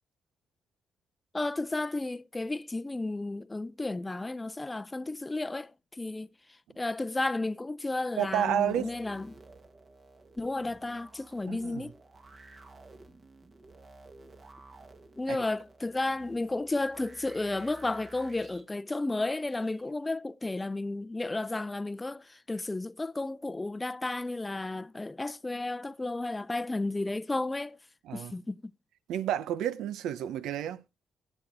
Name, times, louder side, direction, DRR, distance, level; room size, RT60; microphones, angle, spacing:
voice 1, 1.3-6.3 6.8-9.3 10.4-11.9 15.2-27.8 28.1-28.7, left 2 dB, 15° left, 0.6 m, -33 dB
sound 1, 8.2-18.7 19.4-19.9, right 2 dB, 35° right, 1.7 m, -54 dB
voice 2, 8.2-8.9 11.5-11.8 15.3-15.4 28.0-28.3 29.1-30.8, right 10 dB, 85° right, 0.8 m, -30 dB
14.5 x 8.1 x 3.5 m
cardioid pair, 90°, 0 cm